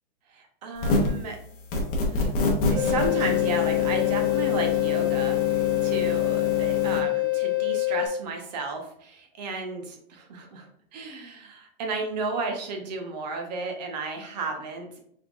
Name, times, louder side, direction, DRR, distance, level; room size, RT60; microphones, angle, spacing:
voice 1, 0.3-1.4 2.1-2.3 2.7-15.0, right 3 dB, 40° right, 3 dB, 1.0 m, -33 dB
sound 1, 0.8-1.2 1.7-7.0, left 4 dB, 25° left, 0.9 m, -27 dB
sound 2, 2.7-8.1, left 19 dB, 10° right, 1.0 m, -25 dB
5.6 x 3.7 x 2.5 m, 0.69 s
supercardioid pair, 165°, 31 cm